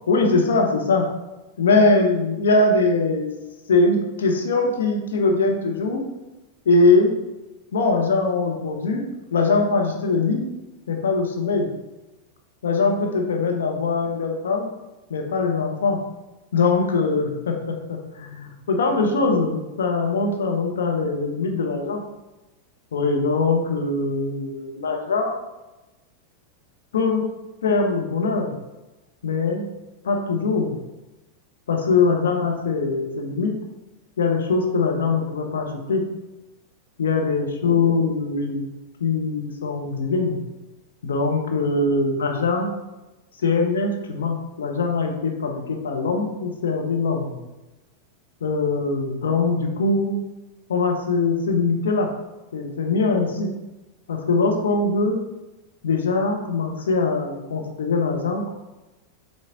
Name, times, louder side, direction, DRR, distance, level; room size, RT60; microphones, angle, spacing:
voice 1, 0.1-1.1 1.6-3.3 3.7-6.0 6.6-7.1 7.7-9.0 9.3-10.4 10.9-11.7 12.6-14.7 15.1-16.0 16.5-22.0 22.9-25.4 26.9-27.2 27.6-28.5 29.2-29.7 30.0-30.8 31.7-33.5 34.2-36.1 37.0-38.7 39.0-40.4 41.0-42.7 43.4-47.4 48.4-50.2 50.7-52.1 52.5-53.5 54.1-55.2 55.8-58.5, left 3 dB, 65° left, 2 dB, 1.1 m, -22 dB
7.5 x 3.8 x 4.0 m, 1.0 s
figure-of-eight pair, 90°, 0 cm